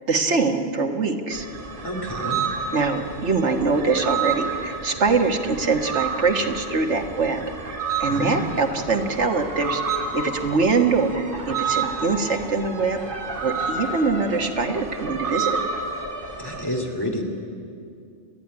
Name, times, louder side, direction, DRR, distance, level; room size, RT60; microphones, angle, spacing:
voice 1, 0.1-1.5 2.7-7.4 7.7-15.6, right 4 dB, 85° right, 4 dB, 1.8 m, -23 dB
sound 1, 1.3-16.6, right 5 dB, 50° right, 2.4 m, -30 dB
voice 2, 1.8-2.5 8.1-8.5 16.4-17.2, equal, 20° left, 1 dB, 2.6 m, -29 dB
29.5 x 10.5 x 9.7 m, 2.4 s
omnidirectional pair, 1.2 m